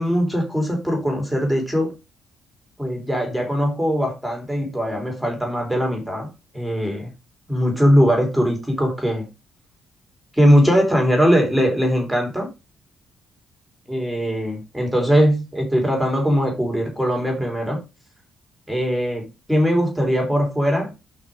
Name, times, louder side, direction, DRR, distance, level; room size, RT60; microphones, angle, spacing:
voice 1, 0.0-1.9 2.8-7.1 7.5-9.3 10.3-12.5 13.9-17.8 18.7-20.9, equal, ahead, 1 dB, 3.6 m, -20 dB
6.1 x 5.8 x 5.0 m, 0.25 s
cardioid pair, 90°, 0 cm